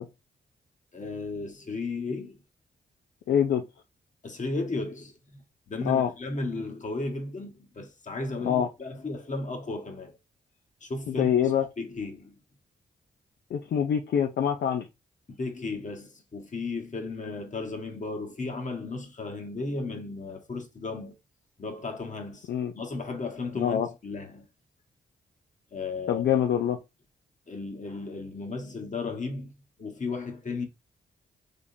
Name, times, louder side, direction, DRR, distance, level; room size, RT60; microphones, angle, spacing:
voice 1, 0.9-2.4 4.2-10.2 10.8-11.3 11.8-12.4 15.3-21.2 21.6-24.5 25.7-26.2 27.5-29.5 29.8-30.7, left 3 dB, 40° left, 1.3 m, -35 dB
voice 2, 3.3-3.6 5.9-6.1 8.5-8.7 11.1-11.7 13.5-14.9 22.5-22.7 23.6-23.9 26.1-26.8, left 9 dB, 70° left, 0.5 m, -25 dB
3.6 x 3.4 x 2.7 m
supercardioid pair, 55°, 18 cm